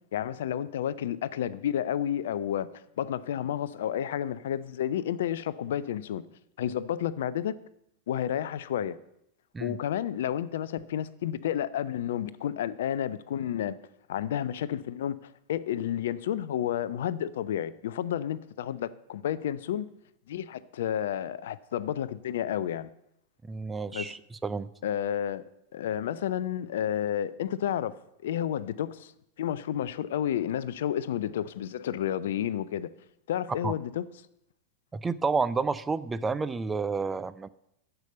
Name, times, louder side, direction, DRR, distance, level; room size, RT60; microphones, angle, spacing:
voice 1, 0.1-2.7 3.0-6.2 6.6-7.5 8.1-9.0 9.6-13.8 14.1-19.9 20.3-22.9 23.9-24.1 24.8-25.4 25.7-28.0 28.2-29.1 29.4-32.9 33.3-34.1, left 10 dB, 60° left, 0.5 m, -31 dB
voice 2, 23.5-24.7 33.6-33.7 34.9-37.5, right 4 dB, 15° right, 0.5 m, -30 dB
10.5 x 6.9 x 7.8 m
figure-of-eight pair, 90°, 0 cm